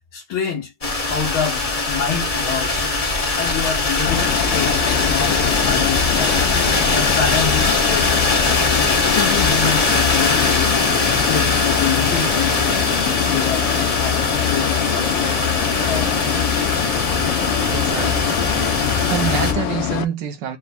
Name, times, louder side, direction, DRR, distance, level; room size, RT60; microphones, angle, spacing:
voice 1, 0.1-0.7 1.0-2.9 3.3-6.5 6.9-8.1 9.2-10.8 11.1-12.6 13.2-13.7 14.0-15.3 15.9-16.4, left 7 dB, 90° left, 2.0 m, -27 dB
sound 1, 0.8-19.5, left 3 dB, 55° left, 0.4 m, -21 dB
sound 2, 4.0-20.0, left 11 dB, 75° left, 1.2 m, -24 dB
voice 2, 17.2-18.2 19.0-20.6, right 8 dB, 70° right, 1.2 m, -26 dB
4.5 x 2.3 x 4.0 m
omnidirectional pair, 2.1 m